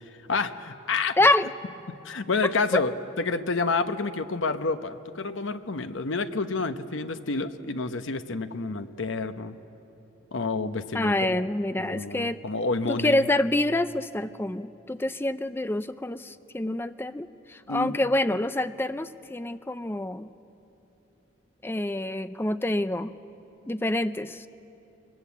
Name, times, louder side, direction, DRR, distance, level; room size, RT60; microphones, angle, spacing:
voice 1, 0.3-1.2 2.0-9.6 10.3-11.4 11.8-13.2 17.7-18.0, left 3 dB, 70° left, 9 dB, 0.8 m, -29 dB
voice 2, 1.2-1.5 2.7-2.8 10.9-12.4 12.9-20.3 21.6-23.1 23.7-24.5, left 1 dB, 10° left, 12 dB, 0.4 m, -26 dB
21.5 x 20.0 x 8.4 m, 2.9 s
head